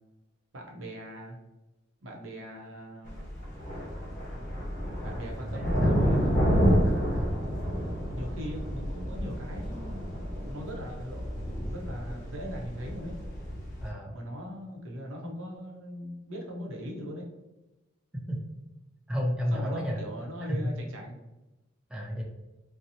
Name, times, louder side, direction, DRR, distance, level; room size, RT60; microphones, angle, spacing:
voice 1, 0.5-1.4 2.0-3.2 5.0-7.1 8.1-13.2 14.1-17.3 19.5-21.2, equal, 80° right, 0 dB, 0.6 m, -40 dB
sound 1, 3.1-13.9, equal, 40° left, 0.9 m, -29 dB
voice 2, 5.4-6.0 6.8-7.4 13.8-14.1 18.3-18.4 19.1-20.0 20.5-20.7 21.9-22.2, equal, 5° right, -3 dB, 0.3 m, -32 dB
2.7 x 2.0 x 2.6 m, 1.0 s
head